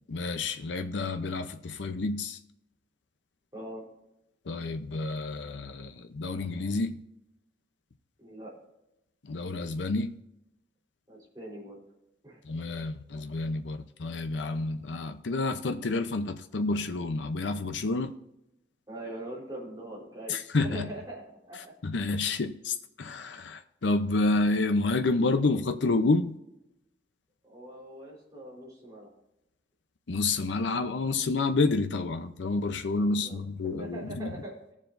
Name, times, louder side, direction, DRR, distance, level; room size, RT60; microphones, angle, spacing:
voice 1, 0.1-2.4 4.4-7.0 9.2-10.1 12.4-18.1 20.3-20.9 21.5-26.4 30.1-34.3, left 3 dB, 90° left, 0.7 m, -29 dB
voice 2, 3.5-3.9 8.2-8.5 11.1-11.8 12.2-12.4 18.9-20.4 20.6-21.7 27.4-29.1 32.9-33.4 33.8-34.7, right 1 dB, 20° right, 4.0 m, -42 dB
19.0 x 7.3 x 2.6 m
head